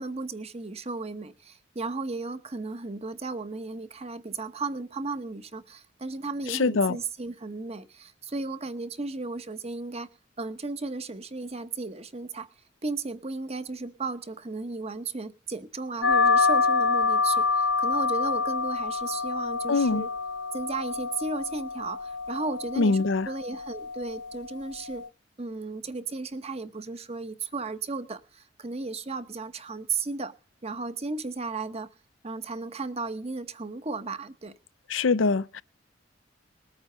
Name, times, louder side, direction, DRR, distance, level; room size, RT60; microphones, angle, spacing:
voice 1, 0.0-10.1 10.4-12.5 12.8-20.1 20.5-25.1 25.4-30.3 30.6-31.9 32.2-34.5, right 3 dB, 35° right, 1.0 m, -35 dB
voice 2, 6.5-7.0 19.7-20.1 22.8-23.3 34.9-35.6, left 4 dB, 85° left, 0.6 m, -23 dB
sound 1, 16.0-25.1, left 4 dB, 65° left, 1.0 m, -27 dB
20.0 x 8.9 x 5.6 m
head